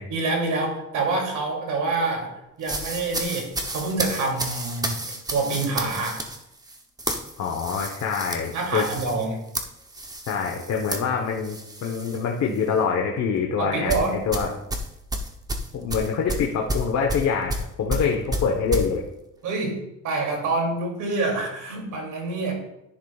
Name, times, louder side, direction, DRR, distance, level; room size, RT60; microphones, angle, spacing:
voice 1, 0.1-2.3 2.6-3.5 3.7-5.0 5.3-6.2 8.5-9.4 13.6-14.2 19.4-19.8 20.0-22.5, right 3 dB, 75° right, 1 dB, 2.8 m, -26 dB
sound 1, 2.6-12.2 12.5-12.8 13.9-18.9, right 1 dB, 10° right, 0.8 m, -31 dB
voice 2, 7.4-9.2 10.3-14.5 15.7-19.0, left 6 dB, 60° left, 0 dB, 1.1 m, -25 dB
10.5 x 10.0 x 2.4 m, 0.87 s
cardioid pair, 150°, 31 cm